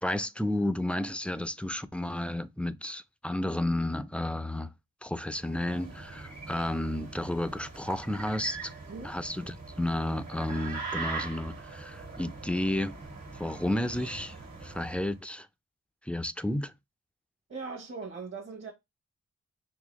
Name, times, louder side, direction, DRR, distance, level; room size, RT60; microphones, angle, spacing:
voice 1, 0.0-4.7 5.0-8.7 9.0-13.0 13.4-14.3 14.6-15.5 16.1-16.7, left 1 dB, 5° left, 0.4 m, -32 dB
sound 1, 5.4-15.1, right 4 dB, 60° right, 1.5 m, -42 dB
voice 2, 17.5-18.7, right 4 dB, 45° right, 1.0 m, -40 dB
3.8 x 2.8 x 3.0 m
cardioid pair, 45°, 29 cm